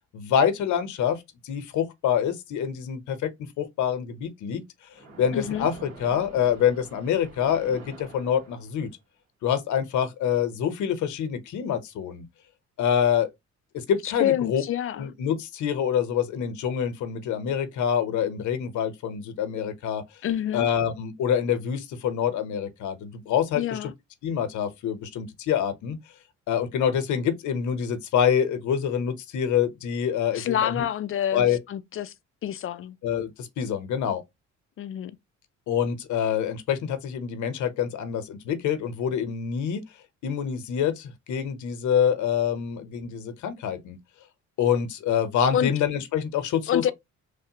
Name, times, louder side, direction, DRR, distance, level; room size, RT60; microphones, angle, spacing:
voice 1, 0.1-3.3 3.6-4.6 5.2-8.9 9.4-12.2 12.8-13.3 13.7-14.6 14.9-20.0 20.5-23.9 24.2-26.0 26.5-30.8 31.3-31.6 33.0-34.2 35.7-39.8 40.2-44.0 44.6-46.9, left 8 dB, 75° left, 0.7 m, -26 dB
Splash splatter, 4.9-9.0, right 3 dB, 65° right, 1.8 m, -46 dB
voice 2, 5.3-5.7 14.0-15.1 20.2-20.7 23.6-23.9 30.3-32.1 32.4-33.0 34.8-35.2 45.5-45.7 46.7-46.9, left 10 dB, 45° left, 0.4 m, -27 dB
3.2 x 2.1 x 2.7 m
cardioid pair, 90°, 30 cm